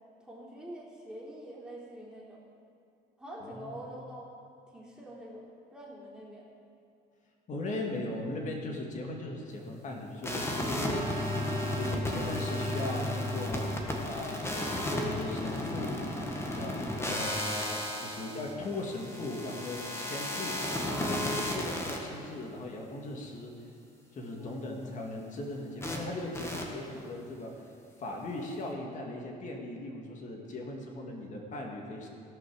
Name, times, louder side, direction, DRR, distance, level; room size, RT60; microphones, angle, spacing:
voice 1, 0.2-2.4 3.2-4.3 4.7-6.5 24.4-24.8, right 1 dB, 5° right, -6 dB, 3.4 m, -45 dB
voice 2, 3.4-3.8 7.5-11.3 11.7-13.7 14.0-16.0 16.6-20.6 21.0-23.5 24.1-27.6 28.0-32.1, left 2 dB, 45° left, 0 dB, 2.0 m, -38 dB
sound 1, 10.2-22.0 25.8-26.0 26.3-26.6, left 1 dB, 15° left, 1.6 m, -33 dB
17.0 x 5.9 x 6.4 m, 2.5 s
cardioid pair, 110°, 17 cm